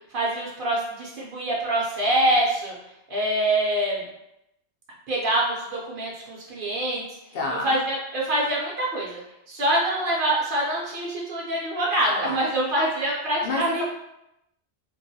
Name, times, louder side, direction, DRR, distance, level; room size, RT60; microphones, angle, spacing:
voice 1, 0.1-2.7 3.1-4.0 5.1-7.0 7.6-9.2 9.5-13.8, right 1 dB, 60° right, -4 dB, 0.7 m, -25 dB
voice 2, 7.3-7.8 12.1-12.4 13.4-13.8, left 2 dB, 60° left, -1 dB, 0.6 m, -29 dB
2.3 x 2.2 x 2.6 m, 0.85 s
omnidirectional pair, 1.1 m